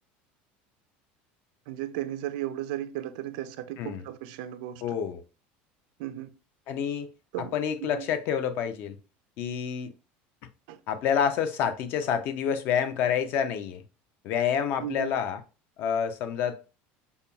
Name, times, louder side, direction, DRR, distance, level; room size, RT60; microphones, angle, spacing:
voice 1, 1.7-5.0 6.0-6.3 7.3-8.1 10.7-10.8 14.8-15.1, right 13 dB, 75° right, 0.4 m, -35 dB
voice 2, 4.8-5.2 6.7-7.1 7.5-9.0 9.4-9.9 10.9-13.8 14.2-15.4 15.8-16.6, left 8 dB, 50° left, 0.4 m, -28 dB
5.3 x 2.2 x 2.3 m
cardioid pair, 160°, 5 cm